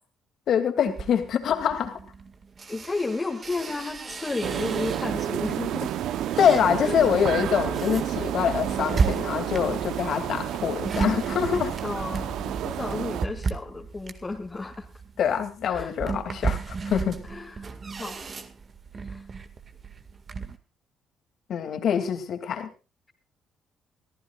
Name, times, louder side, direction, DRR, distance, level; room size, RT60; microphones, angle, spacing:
voice 1, 0.5-2.0 6.4-11.8 15.2-17.2 21.5-22.7, left 8 dB, 65° left, 8 dB, 2.6 m, -25 dB
sound 1, 0.9-5.4 5.8-20.6, right 4 dB, 40° right, 1.9 m, -34 dB
voice 2, 2.7-5.9 6.8-7.0 11.8-14.9 15.7-16.0 17.2-18.2 18.9-19.3, left 3 dB, 25° left, -1 dB, 2.2 m, -33 dB
sound 2, 4.4-13.2, right 11 dB, 75° right, 0.8 m, -30 dB
24.0 x 14.5 x 2.4 m, 0.31 s
supercardioid pair, 70°, 0 cm